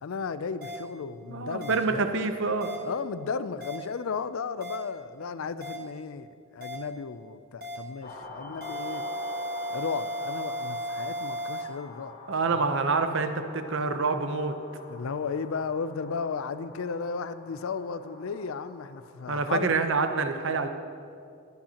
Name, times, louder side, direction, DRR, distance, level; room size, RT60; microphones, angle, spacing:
voice 1, 0.0-2.1 2.9-9.0 9.7-12.1 12.6-12.7 14.9-19.7, left 5 dB, 70° left, 14 dB, 0.4 m, -34 dB
sound 1, 0.6-0.8 1.6-1.8 2.6-2.8 3.6-3.8 4.6-4.8 5.6-5.8 6.6-6.8 7.6-7.8 8.6-11.6, equal, 45° right, 1.5 m, -34 dB
voice 2, 1.3-2.7 12.3-14.6 19.3-20.7, right 4 dB, 60° right, 7 dB, 0.8 m, -27 dB
sound 2, 8.0-19.1, left 2 dB, 45° left, 1.4 m, -46 dB
20.0 x 8.9 x 2.9 m, 2.4 s
head